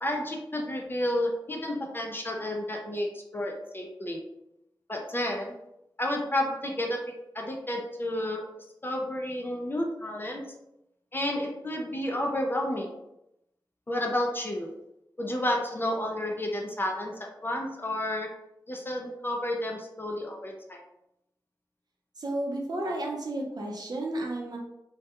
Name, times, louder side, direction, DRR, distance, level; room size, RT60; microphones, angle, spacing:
voice 1, 0.0-4.2 4.9-5.6 6.0-8.4 8.8-10.4 11.1-13.0 13.9-14.7 15.2-18.3 18.7-20.8, left 1 dB, 25° left, 1 dB, 0.4 m, -31 dB
voice 2, 22.2-24.6, right 1 dB, 55° right, -1 dB, 0.6 m, -32 dB
2.2 x 2.2 x 2.8 m, 0.83 s
wide cardioid pair, 90°, 8 cm